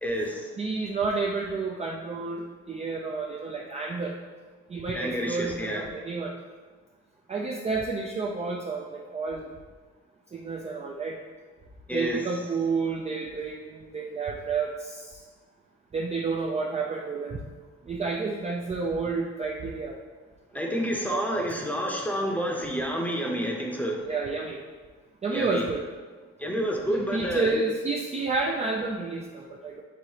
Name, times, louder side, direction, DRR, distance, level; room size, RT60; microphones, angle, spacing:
voice 1, 0.0-0.5 4.9-5.9 11.9-12.4 20.5-24.1 25.3-25.6 26.4-27.6, equal, 5° left, 0 dB, 0.7 m, -29 dB
voice 2, 0.6-4.2 4.7-6.3 7.3-9.5 10.3-11.2 11.9-15.2 15.9-17.4 17.9-20.0 20.5-20.6 21.1-21.5 24.1-24.6 25.2-25.8 26.9-29.8, right 4 dB, 25° right, 0 dB, 0.4 m, -30 dB
4.8 x 3.7 x 2.8 m, 1.4 s
cardioid pair, 90°, 30 cm